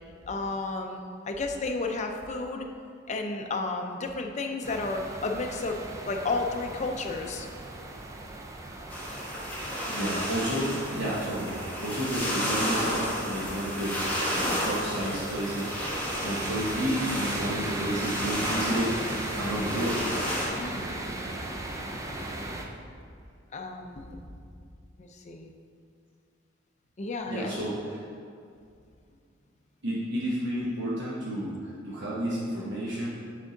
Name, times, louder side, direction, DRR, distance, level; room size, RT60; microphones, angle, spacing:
voice 1, 0.3-2.7 3.1-7.5 20.6-21.0 21.4-21.5 23.5-24.2 25.0-25.5 27.0-27.5, left 3 dB, 35° left, 3 dB, 0.5 m, -32 dB
sound 1, 4.6-22.7, right 2 dB, 15° right, 0.4 m, -37 dB
sound 2, 8.9-20.5, equal, 10° left, 1.1 m, -32 dB
voice 2, 9.9-14.0 14.3-19.0 19.4-20.1 27.3-28.0 29.8-33.1, right 1 dB, 65° right, -7 dB, 1.0 m, -31 dB
7.4 x 3.6 x 3.9 m, 2.4 s
head